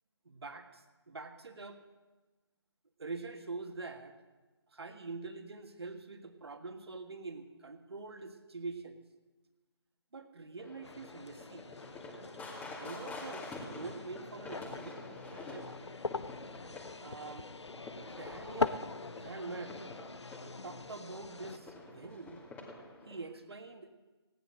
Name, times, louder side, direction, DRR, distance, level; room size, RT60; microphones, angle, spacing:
voice 1, 0.2-1.8 3.0-4.2 4.7-9.0 10.1-11.6 12.8-15.7 17.0-17.5 18.0-18.8 19.2-19.8 20.6-22.4 23.0-23.9, right 3 dB, 70° right, 7 dB, 1.6 m, -45 dB
sound 1, 10.6-23.2, left 2 dB, 10° left, 2.1 m, -48 dB
sound 2, 10.8-21.6, left 3 dB, 85° left, 0.8 m, -42 dB
17.0 x 10.5 x 6.4 m, 1.2 s
figure-of-eight pair, 155°, 14 cm